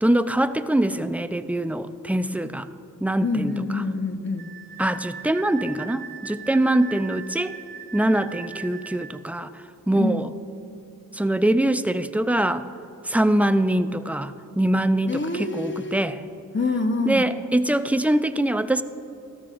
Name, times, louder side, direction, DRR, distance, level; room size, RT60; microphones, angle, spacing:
voice 1, 0.0-2.7 3.0-3.5 4.8-7.5 7.9-10.3 11.1-12.7 13.0-16.2 17.1-18.8, right 1 dB, 5° right, 11 dB, 0.4 m, -23 dB
voice 2, 3.2-4.5 9.9-10.3 15.1-16.0 16.5-17.3, left 2 dB, 35° left, 4 dB, 1.0 m, -26 dB
Wind instrument woodwind instrument, 4.4-9.1, right 8 dB, 75° right, 1.1 m, -39 dB
14.5 x 13.0 x 2.5 m, 2.9 s
cardioid pair, 50°, 35 cm